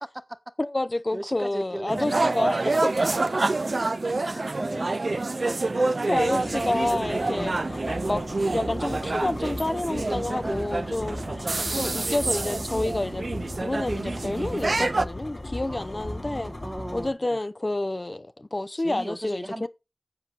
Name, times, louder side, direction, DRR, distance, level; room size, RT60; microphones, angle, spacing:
voice 1, 0.6-2.9 4.2-4.3 6.1-7.5 8.1-13.3 13.6-16.5 16.9-19.7, left 2 dB, 45° left, 0.7 m, -29 dB
voice 2, 1.1-2.1 4.2-4.9 5.4-6.6 6.8-7.0 7.3-7.9 10.4-11.8 15.7-17.4 18.8-19.7, right 1 dB, 25° right, 1.2 m, -38 dB
sound 1, 1.9-15.0, right 3 dB, 75° right, 0.5 m, -27 dB
sound 2, 6.1-17.1, left 1 dB, 70° left, 4.5 m, -37 dB
10.0 x 7.5 x 4.0 m
wide cardioid pair, 40°, 0 cm